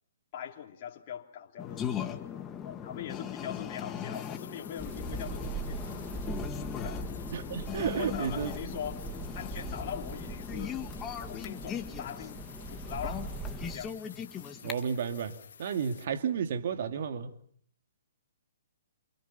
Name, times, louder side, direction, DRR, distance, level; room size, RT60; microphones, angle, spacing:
voice 1, 0.3-6.1 6.8-7.1 8.0-9.1 9.3-10.8 11.3-13.9, left 9 dB, 40° left, 3.2 m, -42 dB
sound 1, 1.6-14.7, left 8 dB, 20° left, 2.1 m, -39 dB
sound 2, 4.1-16.1, left 7 dB, 65° left, 2.2 m, -52 dB
sound 3, 4.8-13.8, right 3 dB, 10° right, 2.3 m, -40 dB
voice 2, 7.3-8.8 14.6-17.4, right 7 dB, 55° right, 2.5 m, -32 dB
28.5 x 28.5 x 5.5 m
hypercardioid pair, 140°, 0 cm